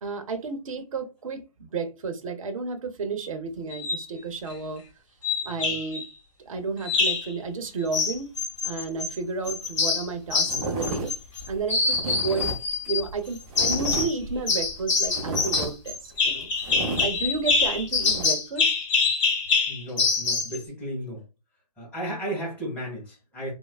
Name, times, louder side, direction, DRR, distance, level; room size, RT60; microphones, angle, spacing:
voice 1, 0.0-4.8 5.4-6.0 6.5-8.3 8.6-11.1 11.5-12.5 12.9-16.5 17.0-18.7, right 4 dB, 55° right, 0.6 m, -32 dB
sound 1, 3.7-4.1 5.2-6.0 6.9-7.3 7.9-9.1 9.5-11.4 11.7-13.0 13.6-14.2 14.5-20.6, left 4 dB, 50° left, 1.2 m, -25 dB
sound 2, 9.5-9.6 9.8-10.1 10.4-18.2, right 2 dB, 10° right, 0.3 m, -34 dB
voice 2, 19.7-21.2 21.8-23.5, right 1 dB, 5° left, 1.5 m, -34 dB
3.2 x 2.0 x 2.3 m
figure-of-eight pair, 140°, 21 cm